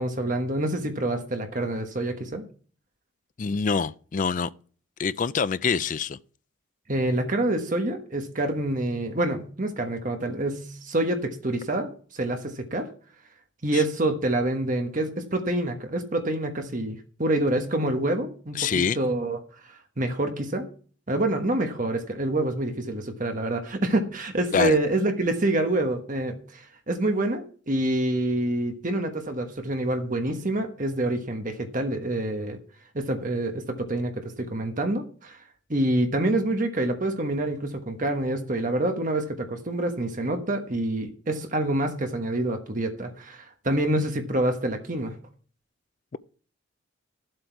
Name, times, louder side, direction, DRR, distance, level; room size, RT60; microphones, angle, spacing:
voice 1, 0.0-2.4 6.9-12.9 13.6-20.7 21.1-32.6 32.9-35.4 35.7-45.1, right 1 dB, 40° right, 1.3 m, -27 dB
voice 2, 3.4-4.5 5.0-6.2 13.7-13.8 18.6-19.0 24.5-24.8, left 5 dB, 40° left, 0.4 m, -25 dB
13.0 x 7.8 x 4.6 m
head